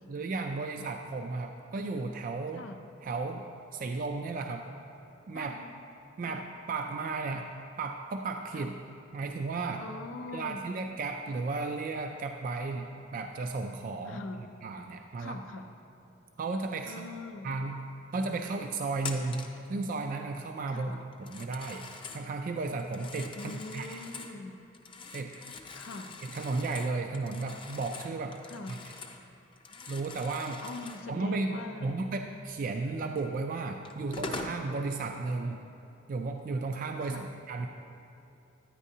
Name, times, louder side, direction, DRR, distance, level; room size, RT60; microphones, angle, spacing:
voice 1, 0.1-2.7 3.0-4.7 5.3-5.6 6.2-7.5 7.8-8.8 9.1-9.8 10.3-15.4 16.4-17.1 17.4-17.8 18.1-20.9 21.2-21.8 22.1-24.0 25.1-25.3 26.2-28.4 28.7-28.8 29.9-30.6 31.1-35.6 36.1-37.7, right 3 dB, 45° right, 4 dB, 0.3 m, -34 dB
voice 2, 5.3-5.7 6.2-6.4 8.5-8.7 9.8-10.6 14.0-14.5 15.2-15.7 16.8-17.5 20.7-21.0 23.4-24.6 25.7-26.1 28.5-28.8 30.6-32.0 37.0-37.3, left 3 dB, 90° left, 6 dB, 0.6 m, -42 dB
Telephone, 19.0-19.6 21.1-22.3 22.8-24.4 24.7-29.2 29.5-31.1 33.2-33.3 33.8-34.6, left 3 dB, 25° left, 0.5 m, -43 dB
9.8 x 9.8 x 2.7 m, 2.7 s
head